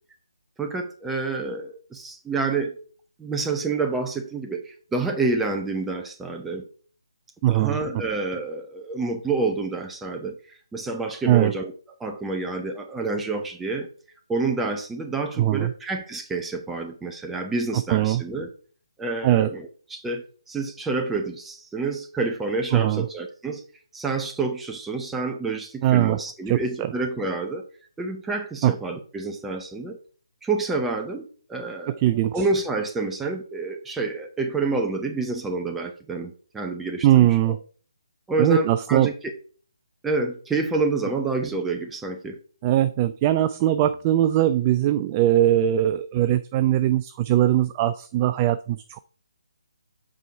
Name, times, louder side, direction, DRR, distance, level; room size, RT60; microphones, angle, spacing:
voice 1, 0.6-2.8 3.2-6.7 7.5-11.7 12.0-13.9 14.3-18.5 19.0-23.6 23.9-27.6 28.0-30.0 30.4-32.0 32.3-37.3 38.3-39.3 40.0-42.4, right 3 dB, 5° right, 4 dB, 0.9 m, -28 dB
voice 2, 7.4-7.8 11.3-11.5 15.4-15.7 17.9-18.2 19.2-19.5 22.7-23.1 25.8-26.2 26.5-26.9 28.6-28.7 32.0-32.5 37.0-37.6 38.4-39.1 42.6-49.0, right 13 dB, 20° right, 12 dB, 0.3 m, -20 dB
7.7 x 4.6 x 4.6 m, 0.43 s
figure-of-eight pair, 145°, 3 cm